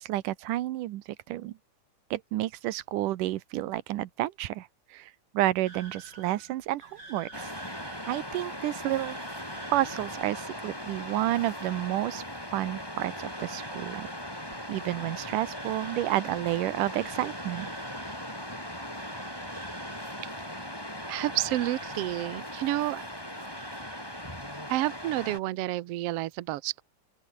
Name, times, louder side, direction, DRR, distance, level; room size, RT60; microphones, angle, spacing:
voice 1, 0.0-1.5 2.1-7.5 8.1-9.2 9.7-12.2 12.5-14.1 14.7-17.7, right 15 dB, 90° right, 2.6 m, -30 dB
sound 1, 5.7-24.5 24.8-25.3, right 2 dB, 30° right, 6.4 m, -50 dB
Waves surf, 7.3-25.4, equal, 5° left, 7.3 m, -39 dB
voice 2, 21.1-23.0 24.7-26.8, right 16 dB, 70° right, 1.5 m, -30 dB
open air
omnidirectional pair, 3.6 m